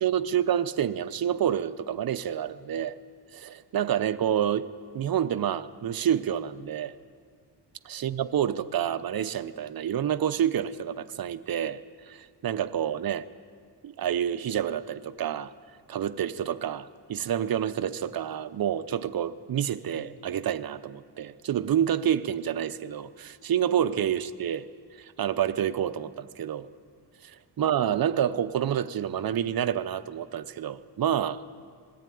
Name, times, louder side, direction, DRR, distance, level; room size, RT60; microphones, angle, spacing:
voice 1, 0.0-3.0 3.3-4.7 4.9-6.9 7.8-11.8 12.1-13.3 13.8-15.5 15.9-24.7 25.0-26.7 27.2-27.3 27.6-31.4, right 9 dB, 55° right, 11 dB, 0.8 m, -28 dB
20.5 x 14.0 x 9.3 m, 2.1 s
wide cardioid pair, 140°, 43 cm